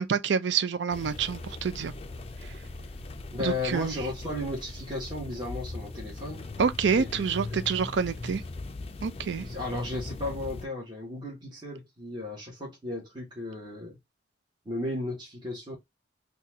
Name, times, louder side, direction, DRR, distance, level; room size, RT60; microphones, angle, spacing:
voice 1, 0.0-1.9 3.4-3.9 6.6-8.4 9.0-9.5, right 6 dB, 70° right, 0.4 m, -27 dB
sound 1, 0.9-10.7, left 2 dB, 30° left, 0.4 m, -40 dB
voice 2, 3.3-6.5 6.9-7.2 7.5-7.6 9.3-14.0 14.6-15.7, left 2 dB, 25° right, 1.2 m, -35 dB
4.0 x 2.3 x 2.6 m
head